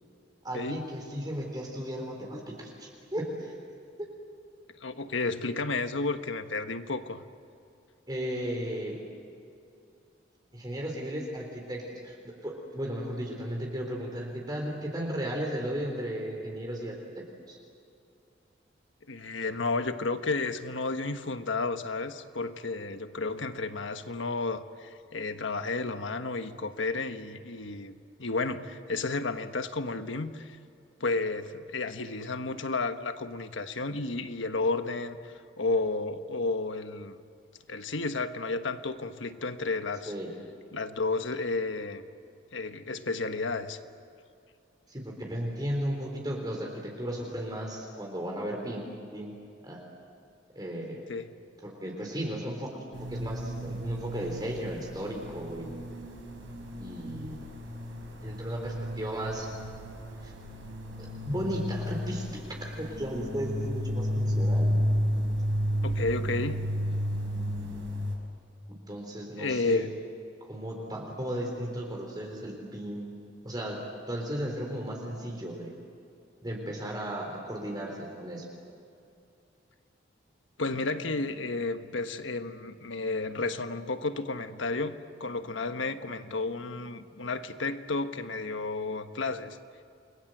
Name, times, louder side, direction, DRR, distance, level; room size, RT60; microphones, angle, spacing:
voice 1, 0.4-3.6 8.1-9.0 10.5-17.6 40.1-40.3 44.9-49.3 49.6-49.8 50.6-51.0 51.6-55.8 56.8-57.5 58.2-59.5 60.2-60.3 61.0-64.7 68.7-69.9 70.4-73.1 73.4-73.8 74.1-75.7 76.4-78.5, equal, 20° right, 0 dB, 3.8 m, -35 dB
voice 2, 4.8-7.2 19.1-30.6 31.0-37.2 37.7-40.1 40.7-42.0 42.5-43.8 51.1-51.3 65.8-66.6 69.4-69.9 80.6-84.9 85.2-89.6, left 3 dB, 85° left, 8 dB, 1.4 m, -32 dB
sound 1, 52.9-68.2, equal, 75° right, 5.8 m, -32 dB
29.5 x 22.5 x 8.0 m, 2.5 s
head